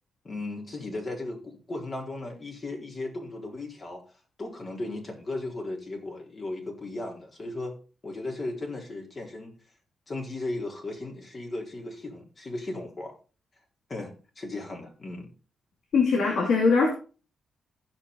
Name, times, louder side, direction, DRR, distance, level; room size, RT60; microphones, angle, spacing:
voice 1, 0.2-4.0 4.4-7.8 8.0-9.5 10.1-13.2 13.9-15.3, left 2 dB, 40° left, 4.1 m, -36 dB
voice 2, 15.9-16.9, left 4 dB, 70° left, 3.0 m, -21 dB
15.0 x 6.1 x 4.0 m
cardioid pair, 65°, 0 cm